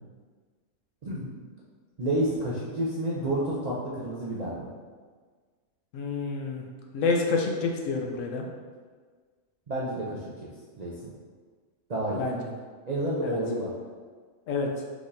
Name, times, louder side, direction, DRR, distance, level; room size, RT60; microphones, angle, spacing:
voice 1, 1.0-1.5 2.0-4.7 9.7-10.2 10.8-11.1 11.9-12.3 12.9-13.7, right 1 dB, 50° right, -7 dB, 0.5 m, -30 dB
voice 2, 5.9-6.6 6.9-8.4 12.1-12.4 13.2-13.4 14.5-14.7, left 4 dB, 75° left, 2 dB, 0.9 m, -28 dB
4.9 x 3.6 x 2.6 m, 1.5 s
omnidirectional pair, 1.4 m